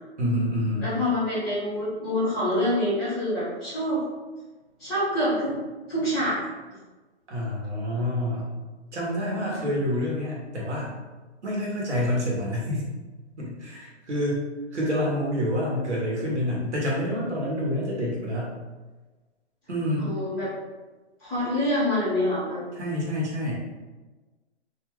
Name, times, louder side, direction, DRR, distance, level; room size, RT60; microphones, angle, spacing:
voice 1, 0.2-0.9 7.3-8.5 8.9-10.9 11.4-12.9 13.4-14.4 14.7-18.5 19.7-20.1 22.7-23.5, equal, 85° right, -4 dB, 1.4 m, -27 dB
voice 2, 0.8-4.0 4.8-5.5 5.9-6.4 9.5-9.7 20.0-20.5 21.2-22.6, left 1 dB, ahead, -22 dB, 0.3 m, -26 dB
2.7 x 2.5 x 3.2 m, 1.2 s
hypercardioid pair, 155°, 34 cm